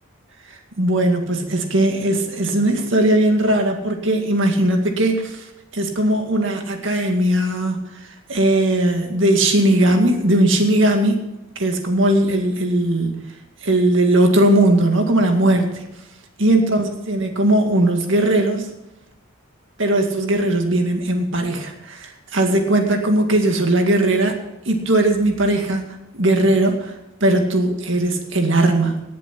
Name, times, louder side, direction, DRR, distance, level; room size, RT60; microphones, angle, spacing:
voice 1, 0.8-5.4 5.7-7.8 8.3-11.2 11.6-13.2 13.6-15.8 16.4-18.7 19.8-24.4 24.7-25.8 26.1-26.9 27.2-29.0, right 1 dB, 60° right, 4 dB, 2.1 m, -18 dB
18.5 x 7.8 x 6.1 m, 0.93 s
head